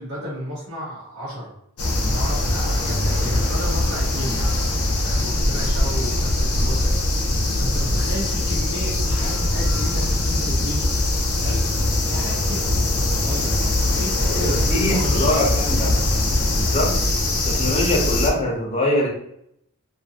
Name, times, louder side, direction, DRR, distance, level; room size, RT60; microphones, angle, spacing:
voice 1, 0.0-1.5 2.0-4.6 5.0-11.0 11.4-15.5 15.8-16.1, equal, 65° right, -10 dB, 1.1 m, -33 dB
sound 1, 1.8-18.3, left 1 dB, 75° left, 0.7 m, -21 dB
voice 2, 14.3-15.9 16.5-16.9 17.4-19.1, left 1 dB, 30° left, -2 dB, 0.7 m, -23 dB
2.6 x 2.4 x 2.7 m, 0.74 s
head